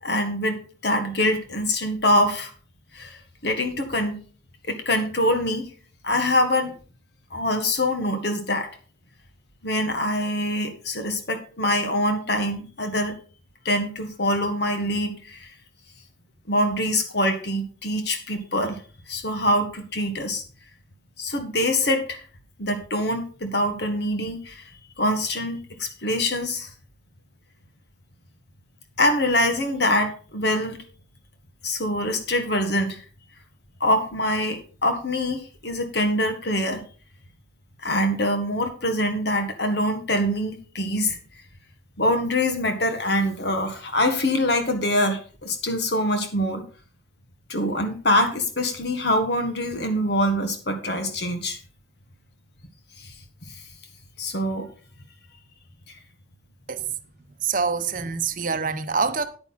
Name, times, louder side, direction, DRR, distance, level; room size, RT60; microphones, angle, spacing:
voice 1, 0.0-2.5 2.9-4.2 4.7-5.7 6.0-6.7 7.3-8.7 9.6-13.1 13.7-15.5 16.5-18.8 19.1-20.4 21.2-22.2 22.6-24.6 25.0-26.7 29.0-30.8 31.6-33.0 33.8-36.8 37.8-41.2 42.0-46.6 47.5-51.6 53.0-53.1 54.2-54.7, left 1 dB, 55° left, 1.7 m, -24 dB
voice 2, 57.4-59.3, right 5 dB, 45° right, 0.8 m, -25 dB
9.6 x 9.1 x 4.1 m
head